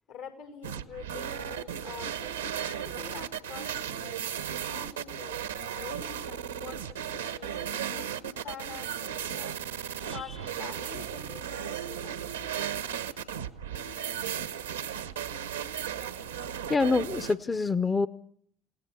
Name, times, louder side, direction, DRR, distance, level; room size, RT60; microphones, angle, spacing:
voice 1, 0.1-4.2 4.6-5.4 5.7-9.5 10.1-12.2, left 7 dB, 75° left, 6 dB, 5.3 m, -46 dB
sound 1, 0.6-17.3, right 9 dB, 90° right, 1.1 m, -35 dB
voice 2, 16.7-18.1, left 4 dB, 25° left, 14 dB, 0.9 m, -26 dB
29.0 x 17.5 x 6.3 m, 0.62 s
hypercardioid pair, 60°, 0 cm